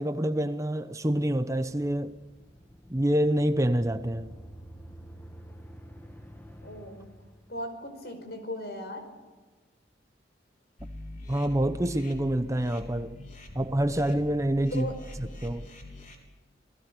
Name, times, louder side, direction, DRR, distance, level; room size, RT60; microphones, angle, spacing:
voice 1, 0.0-2.2 2.9-4.3 11.3-13.2 13.5-14.9 15.2-15.7, right 1 dB, 15° right, 0.8 m, -27 dB
sound 1, 1.7-7.9, equal, 10° left, 2.0 m, -49 dB
voice 2, 6.6-7.1 7.5-9.1 14.7-15.0, left 1 dB, 60° left, 5.3 m, -37 dB
sound 2, 10.8-16.1, left 1 dB, 45° left, 3.7 m, -43 dB
28.5 x 19.0 x 6.8 m
head